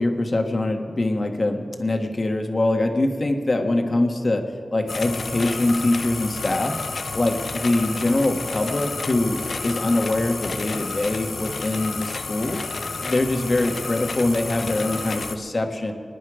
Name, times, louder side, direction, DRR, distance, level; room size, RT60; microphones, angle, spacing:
voice 1, 0.0-4.4 4.7-6.8 7.1-12.6 13.0-15.9, left 2 dB, 55° left, 4 dB, 1.5 m, -23 dB
sound 1, 4.9-15.4, left 4 dB, 85° left, 0.7 m, -31 dB
25.5 x 9.9 x 5.0 m, 2.4 s
cardioid pair, 50°, 0 cm